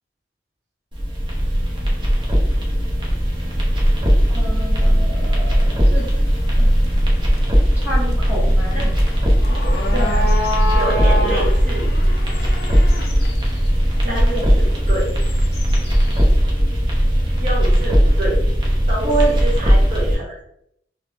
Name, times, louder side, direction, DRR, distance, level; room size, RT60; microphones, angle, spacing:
sound 1, 0.9-20.1, equal, 25° right, 0.6 m, -17 dB
voice 1, 4.3-6.0 6.6-6.7 7.8-8.9 9.9-10.3 14.0-14.6 19.0-19.3, right 2 dB, 10° right, -7 dB, 1.0 m, -27 dB
sound 2, 6.0-16.4, left 1 dB, 55° left, 0.5 m, -29 dB
voice 2, 10.3-11.9 14.1-15.1 17.4-18.4 18.9-20.4, right 1 dB, 45° right, -4 dB, 1.1 m, -27 dB
2.9 x 2.0 x 3.3 m, 0.74 s
head